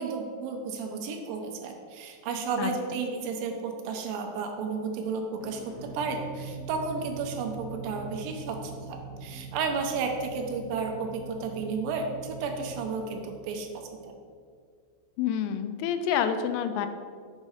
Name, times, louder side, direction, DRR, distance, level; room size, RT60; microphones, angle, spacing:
voice 1, 0.0-14.1, right 4 dB, 80° right, 3 dB, 2.8 m, -33 dB
sound 1, 5.4-14.1, right 4 dB, 75° left, 2.3 m, -43 dB
voice 2, 15.2-16.9, left 8 dB, 90° left, 9 dB, 2.8 m, -28 dB
7.4 x 5.3 x 4.9 m, 2.1 s
omnidirectional pair, 4.9 m